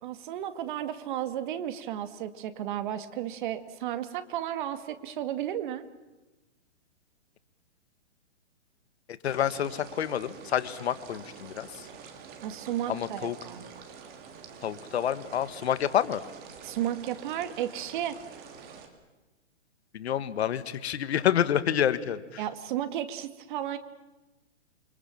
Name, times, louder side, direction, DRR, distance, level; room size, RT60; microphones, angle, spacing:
voice 1, 0.0-5.8 12.4-13.6 16.6-18.2 22.4-23.8, right 11 dB, 40° right, 10 dB, 2.1 m, -33 dB
voice 2, 9.1-11.9 12.9-13.4 14.6-16.2 19.9-22.4, left 10 dB, 60° left, 13 dB, 1.8 m, -28 dB
sound 1, 9.2-18.9, right 6 dB, 25° right, 3.5 m, -47 dB
28.5 x 24.5 x 7.6 m, 1.1 s
hypercardioid pair, 140°, 36 cm